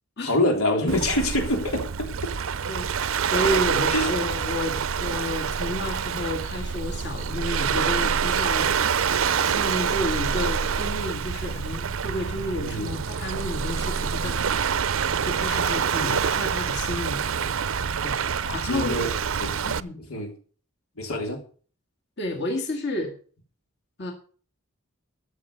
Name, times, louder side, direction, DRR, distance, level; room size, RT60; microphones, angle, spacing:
voice 1, 0.2-1.8 3.9-4.1 12.6-12.9 18.4-19.1 19.4-19.5 20.1-20.3 21.0-21.4, left 1 dB, 90° left, 3 dB, 3.4 m, -25 dB
Waves surf, 0.9-19.8, right 6 dB, 70° right, 0.6 m, -26 dB
voice 2, 2.7-8.7 9.4-14.7 15.2-17.2 18.0-18.1 18.5-19.1 19.6-20.0 22.2-23.1 24.0-24.1, left 1 dB, 50° left, 2 dB, 2.1 m, -31 dB
13.0 x 7.1 x 6.7 m, 0.42 s
head